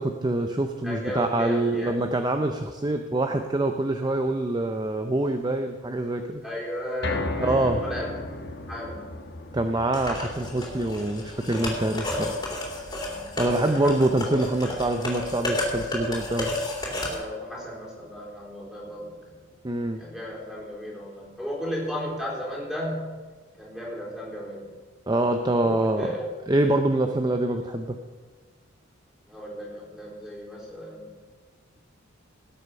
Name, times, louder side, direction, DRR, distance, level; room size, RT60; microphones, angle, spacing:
voice 1, 0.0-6.4 7.4-7.8 9.5-12.4 13.4-16.5 19.6-20.0 25.1-26.1 26.5-28.0, right 2 dB, 20° right, 6 dB, 0.6 m, -25 dB
voice 2, 0.8-1.9 6.4-8.1 8.7-9.1 12.0-12.4 13.0-13.3 13.7-14.1 17.1-19.4 20.0-23.1 23.6-24.7 25.6-26.3 29.3-31.1, equal, ahead, -5 dB, 4.0 m, -35 dB
sound 1, 7.0-19.3 19.7-19.8 20.2-20.3, left 2 dB, 55° left, 1.2 m, -38 dB
sound 2, 9.9-17.1, left 1 dB, 20° left, 3.2 m, -31 dB
18.0 x 8.0 x 5.5 m, 1.5 s
head